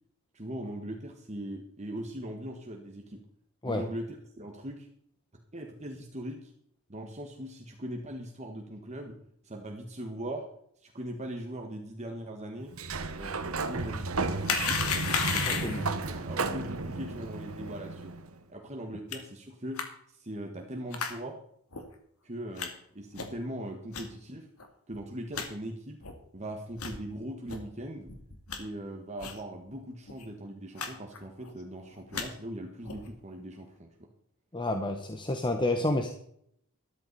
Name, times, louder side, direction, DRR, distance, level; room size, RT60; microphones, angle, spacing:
voice 1, 0.3-3.2 3.6-4.9 5.5-6.5 6.9-9.2 9.4-10.4 10.8-12.7 13.1-14.9 15.3-18.1 18.5-19.8 20.1-21.4 22.2-24.5 24.9-26.0 26.3-28.1 28.6-33.9, right 1 dB, 30° right, 2 dB, 1.5 m, -40 dB
Sliding door, 12.7-18.4, right 3 dB, 75° right, 1.3 m, -33 dB
sound 1, 14.4-15.9 19.1-19.2 19.8-19.9 20.9-21.1 21.7-21.8 22.6-22.7 23.1-23.4 23.9-24.0 24.6-24.7 24.9-25.0 25.3-25.5 26.0-26.1 26.7-27.0 27.5-27.6 28.1-28.6 29.2-29.4 29.7-29.8 30.1-30.2 30.8-30.9 31.1-31.5 31.9-32.3 32.8-33.1, left 6 dB, 85° left, 2.4 m, -33 dB
voice 2, 15.3-15.8 34.5-36.1, left 2 dB, 20° left, 6 dB, 1.1 m, -30 dB
13.5 x 12.5 x 4.2 m, 0.70 s
head